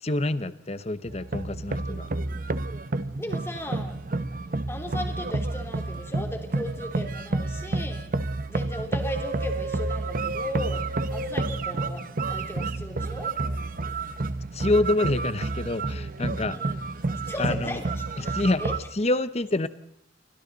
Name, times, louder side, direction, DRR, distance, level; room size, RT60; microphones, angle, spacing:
voice 1, 0.0-2.1 14.5-16.6 17.4-17.8 18.2-18.6 18.9-19.7, left 2 dB, 35° left, 0.9 m, -26 dB
sound 1, 1.1-18.8, right 2 dB, 50° right, 0.9 m, -30 dB
voice 2, 3.2-4.0 4.7-8.1 8.5-10.8 11.1-13.4 16.5-16.9 17.1-18.8, equal, 15° left, 3.2 m, -37 dB
28.5 x 24.5 x 4.0 m
head